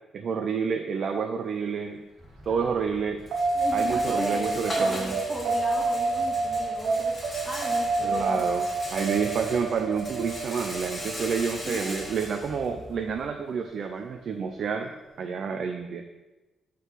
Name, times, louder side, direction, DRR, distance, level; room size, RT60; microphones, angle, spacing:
voice 1, 0.1-2.1 2.5-3.3 3.7-5.2 8.0-14.9 15.2-16.0, right 6 dB, 55° right, 6 dB, 0.4 m, -29 dB
Rattle, 2.2-13.2, left 1 dB, 20° left, 1.9 m, -40 dB
sound 1, 3.3-14.1, right 3 dB, 85° right, 1.0 m, -29 dB
voice 2, 3.5-8.5 11.6-11.9, equal, 10° right, -5 dB, 1.9 m, -36 dB
5.5 x 3.9 x 6.0 m, 1.1 s
cardioid pair, 120°, 0 cm